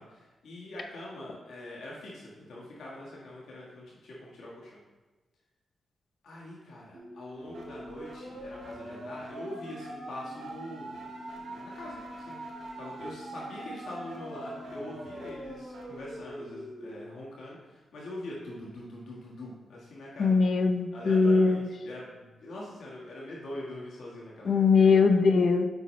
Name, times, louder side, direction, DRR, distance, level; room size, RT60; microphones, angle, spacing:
voice 1, 0.0-4.8 6.2-10.9 11.3-12.4 12.8-20.4 20.9-25.1, left 1 dB, 90° left, -5 dB, 1.5 m, -43 dB
sound 1, 6.9-16.9, right 1 dB, 90° right, 1.5 m, -42 dB
voice 2, 20.2-21.7 24.4-25.6, left 4 dB, 55° left, 6 dB, 0.6 m, -21 dB
8.0 x 5.3 x 3.2 m, 1.2 s
wide cardioid pair, 115°, 0 cm